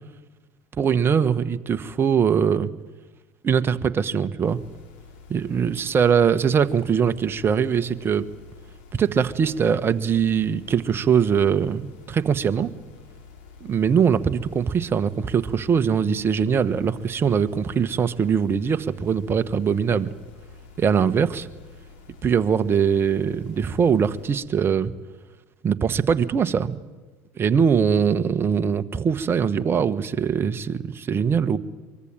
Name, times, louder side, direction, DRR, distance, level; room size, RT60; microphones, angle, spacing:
voice 1, 0.8-2.7 3.4-4.6 5.3-8.2 8.9-12.7 13.6-20.1 20.8-21.5 22.2-24.9 25.6-26.8 27.3-31.6, right 7 dB, 35° right, 11 dB, 1.4 m, -22 dB
sound 1, 4.4-24.3, left 4 dB, 70° left, 7.3 m, -48 dB
24.0 x 23.0 x 9.0 m, 1.2 s
hypercardioid pair, 75°, 7 cm